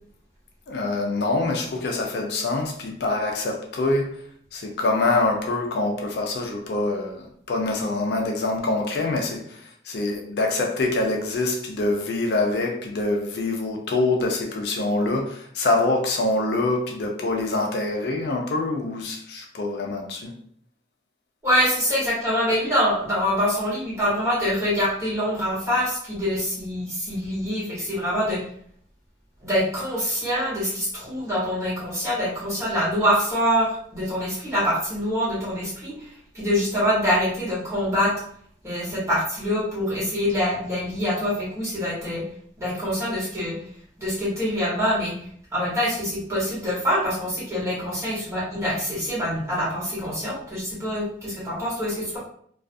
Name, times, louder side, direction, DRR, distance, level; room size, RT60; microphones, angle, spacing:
voice 1, 0.7-20.3, left 2 dB, 60° left, 1 dB, 0.4 m, -25 dB
voice 2, 21.4-28.4 29.4-36.1 36.3-38.1 38.6-42.2 42.6-43.6 44.0-45.1 45.5-52.2, equal, 15° right, -9 dB, 1.1 m, -25 dB
2.4 x 2.3 x 2.5 m, 0.62 s
head